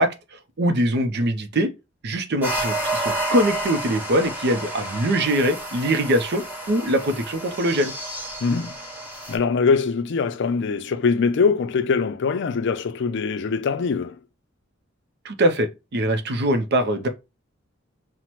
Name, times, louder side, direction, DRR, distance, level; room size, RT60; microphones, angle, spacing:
voice 1, 0.0-1.7 2.0-7.9 15.2-17.1, right 1 dB, 55° right, 0.6 m, -22 dB
sound 1, 2.4-9.4, right 1 dB, 10° right, 1.0 m, -30 dB
voice 2, 8.4-8.7 9.3-14.2, left 5 dB, 60° left, 0.4 m, -22 dB
5.7 x 2.1 x 3.0 m
head